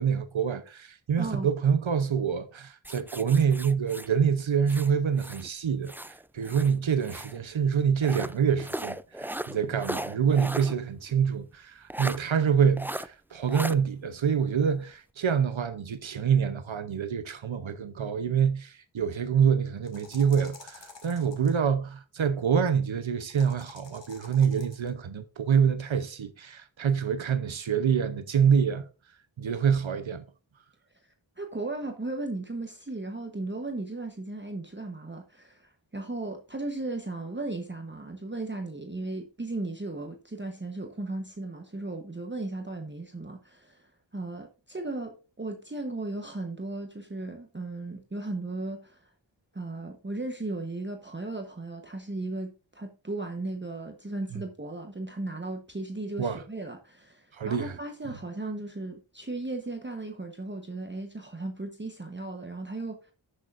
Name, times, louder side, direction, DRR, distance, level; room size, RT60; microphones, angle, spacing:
voice 1, 0.0-28.9 29.4-30.3 56.2-56.4 57.3-57.8, right 7 dB, 80° right, 0.8 m, -26 dB
voice 2, 1.2-1.5 31.4-49.1 49.5-63.1, right 2 dB, 25° right, 1.1 m, -36 dB
sound 1, 2.8-5.5 5.8-7.4 8.0-10.8 11.1-11.2 11.9-12.2 12.8-13.1 13.5-13.8, right 1 dB, 5° right, 0.4 m, -37 dB
sound 2, 19.8-21.5 23.2-24.9, left 4 dB, 65° left, 2.3 m, -50 dB
16.5 x 6.7 x 2.5 m
wide cardioid pair, 45°, 46 cm